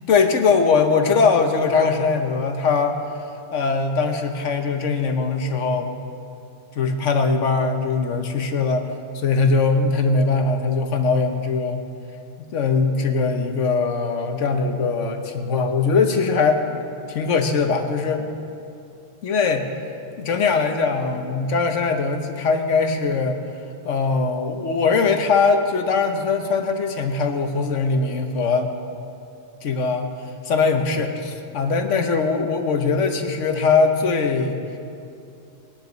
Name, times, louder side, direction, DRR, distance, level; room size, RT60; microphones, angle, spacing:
voice 1, 0.1-3.0 3.5-5.9 6.7-8.9 9.1-11.9 12.4-16.8 17.1-18.3 19.2-19.7 20.2-23.4 23.8-28.7 29.6-30.1 30.4-34.6, left 4 dB, 75° left, 5 dB, 1.3 m, -21 dB
20.5 x 10.0 x 4.0 m, 2.6 s
omnidirectional pair, 1.3 m